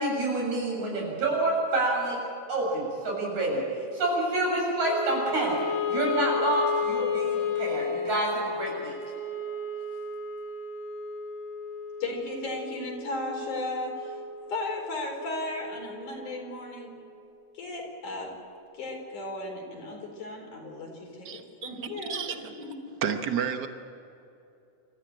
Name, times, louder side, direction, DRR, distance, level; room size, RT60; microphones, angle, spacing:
voice 1, 0.0-2.2 2.5-3.6 3.9-5.6 5.9-8.9, right 2 dB, 65° right, -2 dB, 8.5 m, -27 dB
Wind instrument woodwind instrument, 4.8-17.1, left 5 dB, 45° left, 3.7 m, -34 dB
voice 2, 12.0-14.2 14.5-17.0 17.5-18.3 18.7-22.7, left 2 dB, 75° left, 1 dB, 5.8 m, -35 dB
voice 3, 21.2-21.7 22.1-22.5 23.0-23.7, right 7 dB, 85° right, 6 dB, 0.9 m, -31 dB
27.5 x 14.5 x 8.9 m, 2.8 s
omnidirectional pair, 3.6 m